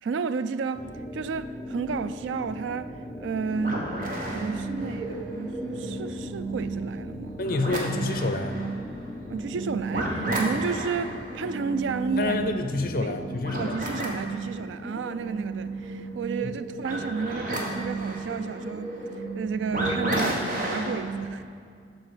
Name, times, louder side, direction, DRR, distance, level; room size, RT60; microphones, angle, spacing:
voice 1, 0.0-3.8 4.3-7.4 9.3-12.5 13.0-13.2 13.6-18.9 19.3-21.4, right 5 dB, 85° right, 0.4 m, -32 dB
sound 1, 0.7-14.0, left 1 dB, 10° left, 0.5 m, -39 dB
sound 2, 3.5-21.2, right 2 dB, 45° right, 1.3 m, -32 dB
voice 2, 7.4-8.6 12.2-13.8 16.4-16.5, left 3 dB, 50° left, 0.6 m, -28 dB
11.0 x 4.1 x 6.7 m
head